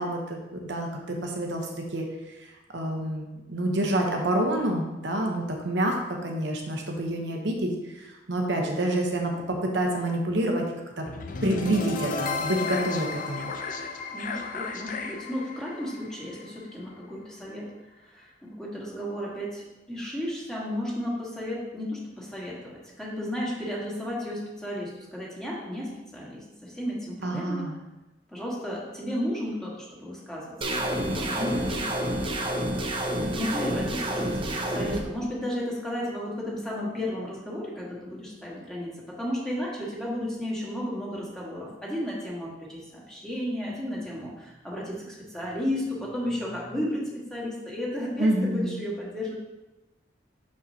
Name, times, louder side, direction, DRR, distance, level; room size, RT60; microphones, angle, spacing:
voice 1, 0.0-2.1 2.7-10.7 11.0-11.1 11.4-13.5 27.2-27.8 48.2-48.7, right 1 dB, 70° right, 1 dB, 1.0 m, -28 dB
sound 1, 11.1-17.1, left 4 dB, 45° left, 0.5 m, -34 dB
voice 2, 14.1-17.7 18.0-27.7 28.3-38.9 39.2-49.3, left 1 dB, 5° left, -5 dB, 1.6 m, -33 dB
sound 2, 30.6-35.0, right 1 dB, 30° right, 0.7 m, -29 dB
6.4 x 5.8 x 2.8 m, 1.1 s
head